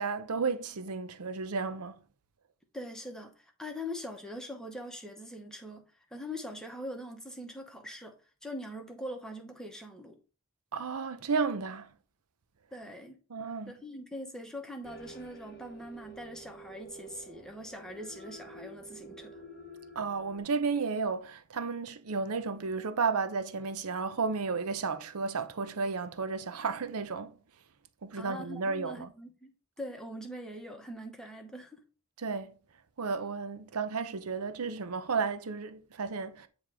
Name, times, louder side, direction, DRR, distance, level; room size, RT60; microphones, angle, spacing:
voice 1, 0.0-2.0 10.7-11.9 13.3-13.7 20.0-27.3 28.0-29.1 32.2-32.6 33.0-36.5, right 4 dB, 85° right, 0.7 m, -33 dB
voice 2, 2.7-8.2 8.4-10.2 12.7-13.2 13.7-19.4 28.1-31.8, equal, 5° left, 1.0 m, -42 dB
sound 1, 14.8-20.4, right 1 dB, 40° left, 1.0 m, -49 dB
9.3 x 3.1 x 4.9 m
head